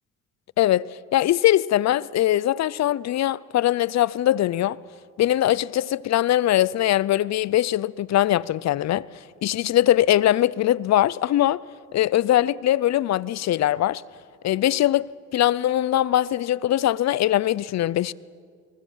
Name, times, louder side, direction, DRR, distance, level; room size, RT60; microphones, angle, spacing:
voice 1, 1.1-4.8 5.2-9.0 9.4-11.6 11.9-14.0 14.4-18.1, left 13 dB, 60° left, 0.6 m, -21 dB
23.0 x 19.5 x 7.4 m
cardioid pair, 90°, 30 cm